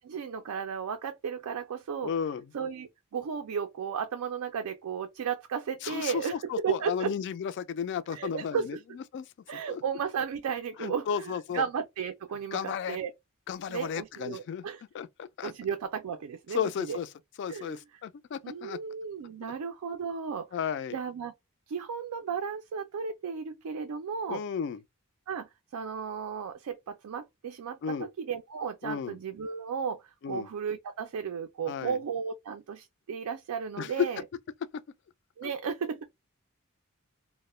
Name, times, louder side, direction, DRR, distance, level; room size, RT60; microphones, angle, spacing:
voice 1, 0.0-2.1 2.5-7.1 8.1-8.8 9.5-13.1 13.7-14.8 15.4-17.0 17.5-17.8 18.4-20.5 20.9-21.3 21.7-24.4 25.3-34.2 35.4-36.0, right 7 dB, 85° right, 0.4 m, -34 dB
voice 2, 2.0-2.5 5.8-9.8 10.8-11.7 12.5-13.0 13.5-14.7 14.9-15.5 16.5-17.1 17.4-18.8 20.5-21.0 24.3-24.8 27.8-28.1 28.8-29.2 30.2-30.5 31.7-32.0 33.8-33.9 35.4-35.5, left 7 dB, 55° left, 0.3 m, -34 dB
2.2 x 2.0 x 3.0 m
head